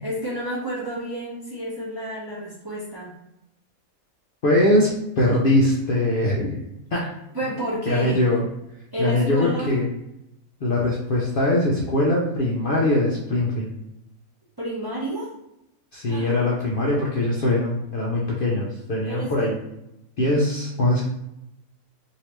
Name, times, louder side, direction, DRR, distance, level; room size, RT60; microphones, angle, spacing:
voice 1, 0.0-3.2 7.3-8.3 8.9-9.7 14.6-15.3 16.0-16.3 19.1-19.5, right 1 dB, 25° right, -6 dB, 0.6 m, -30 dB
voice 2, 4.4-4.9 5.2-6.6 6.9-7.0 7.9-8.4 9.0-9.9 10.6-13.7 15.9-19.5 20.2-21.0, left 1 dB, 55° left, -4 dB, 0.6 m, -21 dB
3.2 x 2.8 x 2.9 m, 0.87 s
omnidirectional pair, 1.5 m